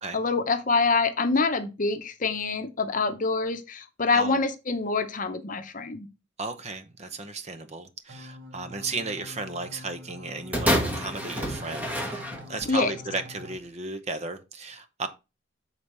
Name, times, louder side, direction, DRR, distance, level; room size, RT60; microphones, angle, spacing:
voice 1, 0.1-6.1 12.7-12.9, left 4 dB, 45° left, 0.8 m, -26 dB
voice 2, 4.1-4.5 6.4-15.1, right 3 dB, 35° right, 0.8 m, -35 dB
sound 1, 8.1-13.6, left 1 dB, 85° right, 1.1 m, -45 dB
sound 2, 10.5-12.8 13.6-13.7, equal, 10° right, 1.2 m, -28 dB
7.1 x 4.1 x 4.6 m
head